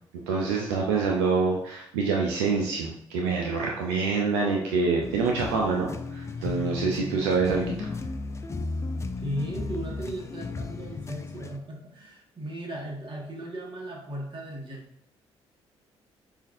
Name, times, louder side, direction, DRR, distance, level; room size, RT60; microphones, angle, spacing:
voice 1, 0.3-7.7, right 4 dB, 85° right, -1 dB, 0.4 m, -26 dB
sound 1, 5.0-11.6, left 3 dB, 20° left, 0.3 m, -34 dB
voice 2, 9.2-14.8, right 1 dB, 40° right, -1 dB, 1.3 m, -36 dB
5.0 x 2.4 x 2.5 m, 0.72 s
hypercardioid pair, 50°, 14 cm